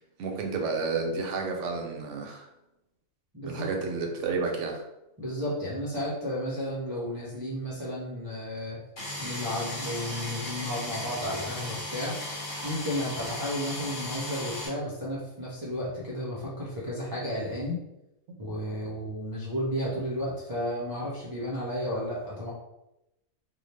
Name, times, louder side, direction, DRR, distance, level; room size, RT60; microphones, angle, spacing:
voice 1, 0.2-2.4 3.4-4.8, right 4 dB, 70° right, 3 dB, 0.9 m, -31 dB
voice 2, 3.3-3.7 5.2-8.8 9.2-12.2 12.6-17.8 18.4-22.5, equal, 35° right, -7 dB, 0.3 m, -33 dB
sound 1, 9.0-14.7, left 1 dB, 65° left, 1.4 m, -36 dB
2.8 x 2.2 x 3.2 m, 0.91 s
omnidirectional pair, 1.4 m